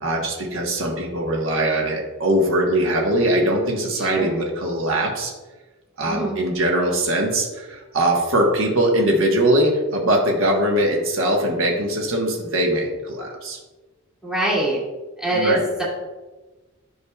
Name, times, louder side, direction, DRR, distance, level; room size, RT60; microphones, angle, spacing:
voice 1, 0.0-5.3 6.0-13.6 15.3-15.6, right 1 dB, 70° right, 0 dB, 1.3 m, -21 dB
voice 2, 3.9-4.4 6.1-6.4 14.2-14.8 15.2-15.8, right 1 dB, 5° right, -6 dB, 2.3 m, -23 dB
9.9 x 6.3 x 2.3 m, 1.2 s
head